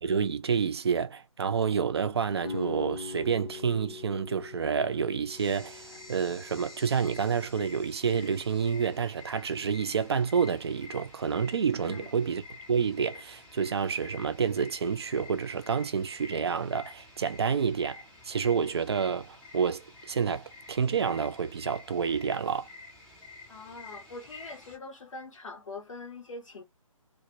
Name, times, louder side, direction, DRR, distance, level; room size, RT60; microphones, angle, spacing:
voice 1, 0.0-12.4 12.7-22.7, right 6 dB, 45° right, 0.4 m, -29 dB
sound 1, 2.4-8.2, left 4 dB, 85° left, 0.9 m, -43 dB
sound 2, 5.3-24.8, left 3 dB, 5° left, 0.6 m, -50 dB
voice 2, 11.8-12.1 23.5-26.6, left 3 dB, 65° left, 0.6 m, -43 dB
2.2 x 2.0 x 2.8 m
figure-of-eight pair, 145°, 18 cm